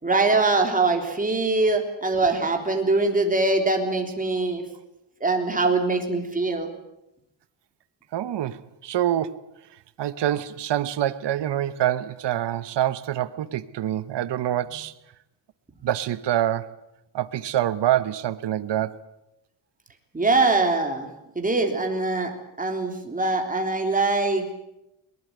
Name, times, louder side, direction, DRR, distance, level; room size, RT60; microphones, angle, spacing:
voice 1, 0.0-4.6 5.2-6.7 20.1-21.1 21.3-24.5, right 3 dB, 15° right, 3.6 m, -23 dB
voice 2, 8.1-9.5 10.0-14.9 15.8-16.8 17.1-19.0, right 12 dB, 60° right, 1.1 m, -26 dB
21.5 x 20.0 x 9.3 m
cardioid pair, 140°, 47 cm